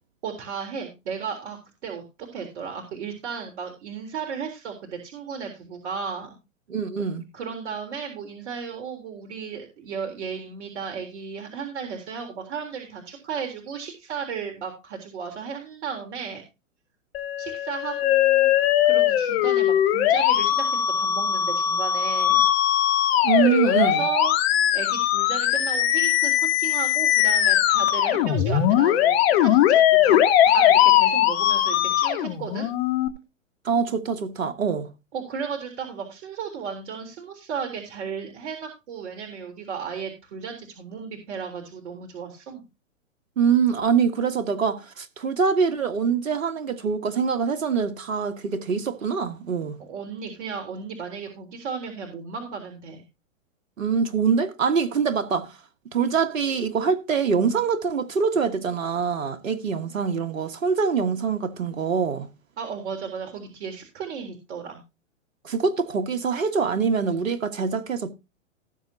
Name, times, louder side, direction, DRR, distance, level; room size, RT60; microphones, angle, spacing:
voice 1, 0.2-2.0 2.3-6.4 7.3-16.4 17.4-18.5 18.8-22.5 23.4-24.3 24.7-30.2 30.5-32.7 35.1-42.6 49.8-53.0 62.6-64.8, right 6 dB, 55° right, 3.7 m, -34 dB
voice 2, 6.7-7.2 23.2-24.1 33.6-34.9 43.4-49.8 53.8-55.5 55.9-62.3 65.4-68.1, right 6 dB, 80° right, 1.7 m, -24 dB
Musical instrument, 17.1-33.1, left 11 dB, 50° left, 2.6 m, -20 dB
18.5 x 8.0 x 2.7 m
hypercardioid pair, 125°, 39 cm